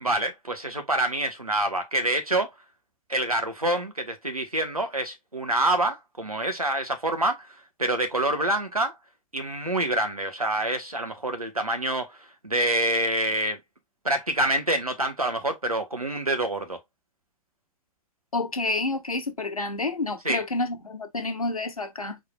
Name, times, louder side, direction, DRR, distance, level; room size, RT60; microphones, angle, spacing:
voice 1, 0.0-2.5 3.1-7.5 7.8-8.9 9.3-12.2 12.4-13.6 14.0-16.8 20.2-20.4, right 1 dB, 90° right, 1.3 m, -26 dB
voice 2, 18.3-22.2, left 2 dB, 80° left, 1.1 m, -29 dB
4.6 x 4.1 x 2.3 m
figure-of-eight pair, 100°, 18 cm